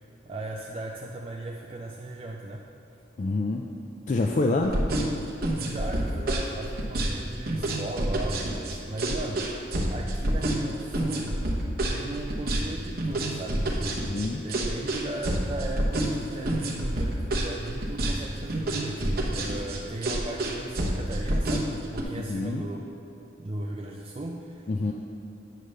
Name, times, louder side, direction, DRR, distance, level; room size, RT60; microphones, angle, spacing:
voice 1, 0.2-2.7 5.6-22.9 23.4-24.9, right 2 dB, 30° right, -1 dB, 0.4 m, -37 dB
voice 2, 3.2-3.7 4.1-4.7 14.0-14.4 22.2-22.6 24.7-24.9, left 2 dB, 40° left, 1 dB, 0.3 m, -26 dB
sound 1, 4.6-22.0, right 1 dB, 50° right, 0.9 m, -28 dB
9.1 x 3.3 x 6.5 m, 2.9 s
head